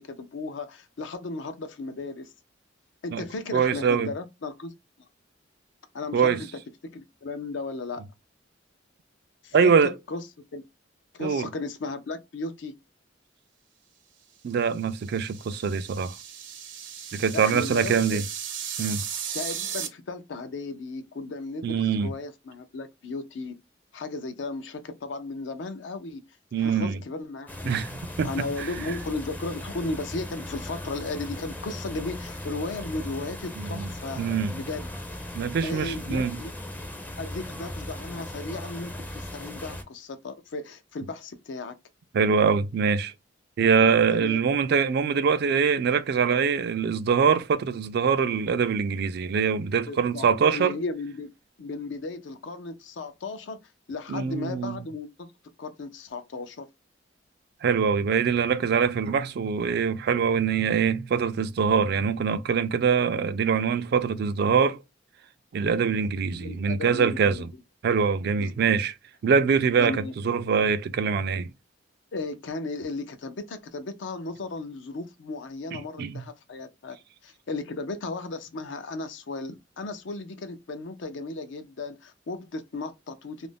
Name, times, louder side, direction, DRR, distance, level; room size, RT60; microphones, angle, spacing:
voice 1, 0.0-2.3 3.0-4.7 5.9-6.5 6.9-8.0 9.4-10.2 10.5-10.6 11.1-12.7 17.1-18.2 19.3-23.5 23.9-26.2 26.6-27.8 28.2-34.2 34.5-34.9 35.6-36.5 37.2-41.7 44.1-44.5 49.9-51.3 51.6-53.6 53.9-55.3 55.6-56.7 66.4-67.5 68.4-68.7 69.8-70.1 72.1-77.0 77.2-83.5, left 3 dB, 75° left, 0.5 m, -35 dB
voice 2, 3.5-4.1 6.1-6.4 9.5-9.9 11.2-11.5 14.4-16.1 17.1-18.2 18.8-19.0 21.6-22.1 26.5-27.0 27.7-28.3 33.6-33.9 34.2-34.5 35.3-36.4 42.1-43.1 43.6-50.7 54.1-54.8 57.6-64.8 65.5-67.5 67.8-68.9 69.2-70.0 70.2-71.5 76.0-76.1, right 6 dB, 55° right, 0.3 m, -23 dB
sound 1, 14.7-19.9, right 8 dB, 80° right, 0.8 m, -36 dB
sound 2, 27.5-39.8, left 1 dB, 10° left, 0.4 m, -38 dB
2.5 x 2.0 x 3.3 m
head